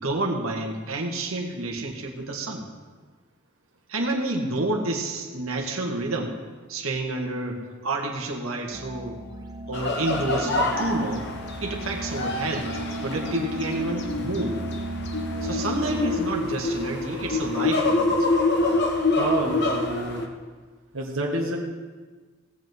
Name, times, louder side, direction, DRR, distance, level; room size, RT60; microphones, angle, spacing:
voice 1, 0.0-2.6 3.9-6.4 6.7-9.2 9.7-11.3 11.6-12.7 13.0-14.6 15.4-18.3, right 2 dB, 85° right, 1 dB, 1.7 m, -29 dB
sound 1, 8.7-16.2, right 1 dB, 20° right, 0.9 m, -35 dB
sound 2, 9.7-20.3, left 2 dB, 55° left, 1.3 m, -26 dB
voice 2, 19.2-20.2 20.9-21.6, right 1 dB, 65° right, -1 dB, 1.4 m, -28 dB
17.0 x 5.7 x 7.8 m, 1.4 s
head